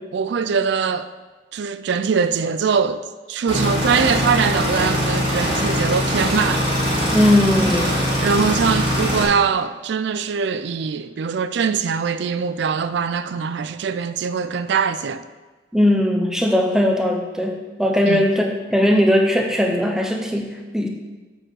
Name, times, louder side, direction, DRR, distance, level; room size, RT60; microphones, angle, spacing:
voice 1, 0.1-1.1 1.5-6.7 8.2-15.2 18.0-18.2, right 6 dB, 60° right, 0.3 m, -22 dB
sound 1, 3.5-9.2, equal, 25° right, 1.6 m, -21 dB
voice 2, 7.1-8.0 15.7-20.9, left 1 dB, 5° right, 0.6 m, -19 dB
7.7 x 4.3 x 4.8 m
head